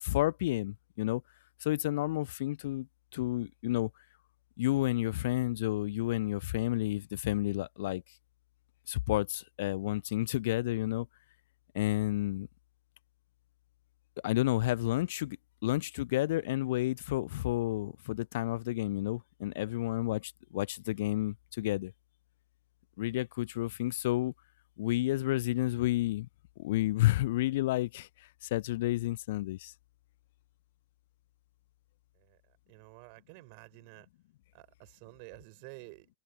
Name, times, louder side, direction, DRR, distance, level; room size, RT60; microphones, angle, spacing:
voice 1, 0.0-1.2 1.6-2.9 3.1-3.9 4.6-8.0 8.9-11.1 11.7-12.5 14.2-15.4 15.6-21.9 23.0-24.3 24.8-26.3 26.6-28.1 28.4-29.7, left 16 dB, 55° left, 0.4 m, -30 dB
voice 2, 32.1-34.1 34.5-36.1, right 36 dB, 45° right, 4.8 m, -51 dB
figure-of-eight pair, 90°, 0 cm